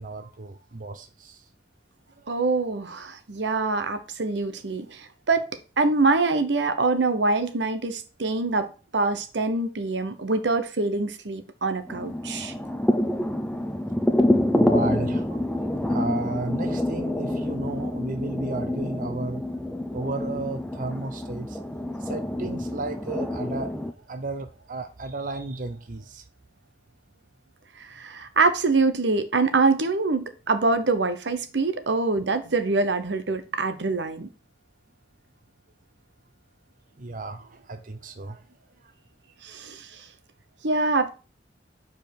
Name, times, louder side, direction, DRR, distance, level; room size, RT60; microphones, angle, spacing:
voice 1, 0.0-1.4 2.2-2.4 14.5-15.5 15.9-19.5 19.9-21.6 22.0-23.7 24.1-26.2 37.0-38.4, right 2 dB, 50° right, 0.7 m, -34 dB
voice 2, 2.3-5.4 5.8-12.5 27.8-34.3 39.4-40.0 40.6-41.1, right 3 dB, 80° right, 0.9 m, -25 dB
sound 1, 11.9-23.9, left 1 dB, 5° left, 0.5 m, -27 dB
5.2 x 4.6 x 6.0 m
head